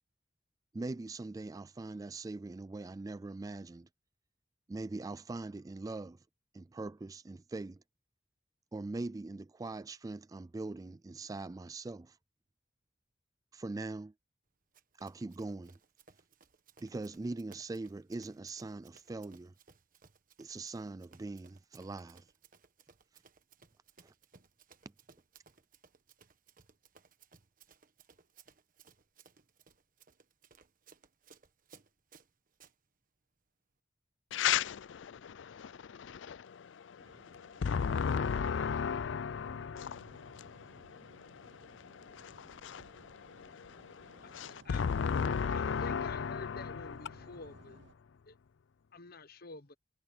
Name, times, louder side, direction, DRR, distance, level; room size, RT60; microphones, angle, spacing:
voice 1, 0.7-3.9 4.7-6.2 6.5-7.8 8.7-12.2 13.5-14.1 15.0-15.8 16.8-19.5 20.4-22.3 24.0-24.1, right 2 dB, 20° right, 0.3 m, -42 dB
Run, 14.7-32.8, right 5 dB, 50° right, 1.3 m, -63 dB
voice 2, 34.3-47.3, left 7 dB, 80° left, 0.4 m, -36 dB
sound 1, 37.0-48.0, right 3 dB, 70° right, 0.8 m, -60 dB
voice 3, 44.2-44.8 45.5-47.8 48.3-48.4 48.9-49.7, left 3 dB, 55° left, 1.1 m, -48 dB
head